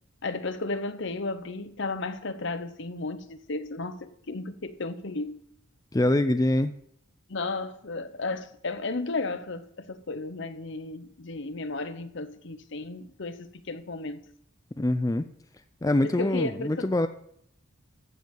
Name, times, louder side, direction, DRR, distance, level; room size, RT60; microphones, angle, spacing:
voice 1, 0.2-5.4 7.3-14.3 16.0-16.9, left 3 dB, 60° left, 0.9 m, -34 dB
voice 2, 5.9-6.7 14.8-15.3 15.8-17.1, left 1 dB, 15° left, 0.4 m, -24 dB
14.5 x 5.4 x 7.6 m
head